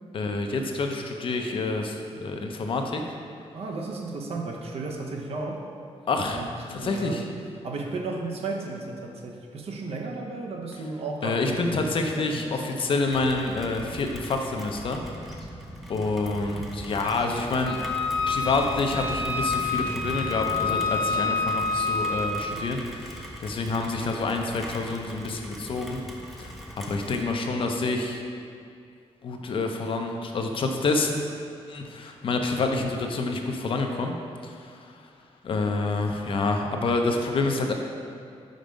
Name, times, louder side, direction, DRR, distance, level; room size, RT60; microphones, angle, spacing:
voice 1, 0.1-3.0 6.1-7.3 11.2-15.0 15.9-17.8 18.3-26.0 26.4-26.5 26.9-28.2 29.2-31.2 31.7-34.1 34.4-34.8 35.4-37.7, left 3 dB, 50° left, 3 dB, 0.5 m, -28 dB
voice 2, 3.5-5.6 6.3-7.2 7.6-11.9 12.2-12.7, right 3 dB, 60° right, 1 dB, 0.7 m, -34 dB
Rain, 13.1-27.3, equal, ahead, 0.5 m, -40 dB
Wind instrument woodwind instrument, 17.7-22.4, left 4 dB, 75° left, 1.1 m, -27 dB
5.1 x 4.5 x 5.1 m, 2.3 s
wide cardioid pair, 170°, 11 cm